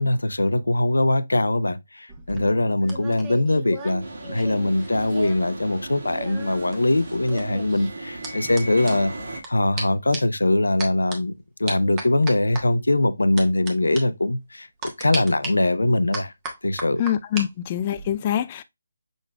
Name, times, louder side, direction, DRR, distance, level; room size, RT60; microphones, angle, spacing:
voice 1, 0.0-9.1 9.5-14.7 15.0-16.3 16.6-17.0, left 2 dB, 85° left, 0.6 m, -22 dB
sound 1, 2.1-5.5 5.8-9.5 9.8-9.9 10.1-10.4 10.8-11.2 11.7-12.6 13.4-13.7 14.0-14.1 14.8-15.5 16.1-17.5 17.8-18.1, right 3 dB, 20° right, 1.2 m, -35 dB
sound 2, 4.0-9.4, right 2 dB, 65° right, 1.9 m, -36 dB
voice 2, 17.0-18.6, left 10 dB, 25° left, 0.3 m, -25 dB
6.1 x 3.8 x 2.2 m
figure-of-eight pair, 155°, 0 cm